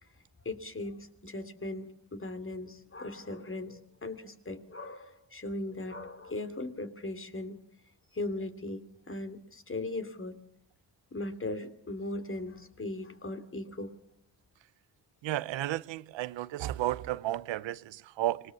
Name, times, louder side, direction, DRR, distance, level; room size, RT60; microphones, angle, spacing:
voice 1, 0.4-7.6 8.1-10.4 11.1-13.9, left 2 dB, 30° left, 3.0 m, -38 dB
voice 2, 15.2-18.4, right 14 dB, 90° right, 0.9 m, -33 dB
26.0 x 20.5 x 7.1 m
cardioid pair, 75°, 43 cm